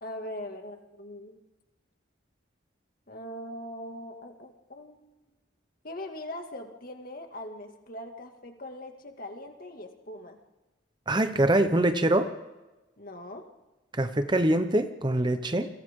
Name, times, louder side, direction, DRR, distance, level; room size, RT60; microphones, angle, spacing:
voice 1, 0.0-1.4 3.1-5.0 5.8-10.4 13.0-13.5, left 1 dB, 45° left, 4 dB, 2.3 m, -41 dB
voice 2, 11.1-12.3 13.9-15.7, right 1 dB, 25° right, 9 dB, 0.9 m, -24 dB
30.0 x 22.5 x 3.8 m, 1.1 s
head